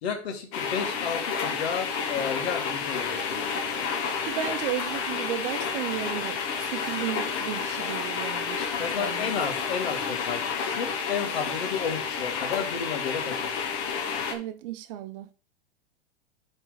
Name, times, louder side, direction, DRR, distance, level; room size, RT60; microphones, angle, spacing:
voice 1, 0.0-3.9 8.8-13.4, left 6 dB, 70° left, 2.4 m, -32 dB
sound 1, 0.5-14.3, left 6 dB, 45° left, 1.8 m, -30 dB
voice 2, 4.2-8.7 9.0-9.3 14.3-15.3, right 12 dB, 55° right, 0.8 m, -34 dB
9.8 x 4.4 x 4.0 m
hypercardioid pair, 105°, 32 cm